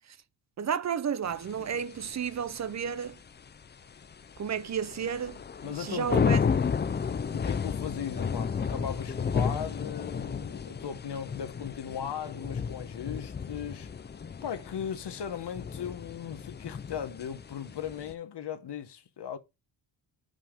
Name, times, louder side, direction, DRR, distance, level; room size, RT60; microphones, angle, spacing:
voice 1, 0.6-3.2 4.4-6.4, right 7 dB, 35° right, 0.5 m, -32 dB
sound 1, 1.3-18.1, left 6 dB, 25° left, 0.4 m, -33 dB
voice 2, 5.6-6.5 7.3-14.1 14.4-19.4, left 8 dB, 55° left, 1.1 m, -38 dB
5.6 x 5.4 x 5.0 m
wide cardioid pair, 120°, 47 cm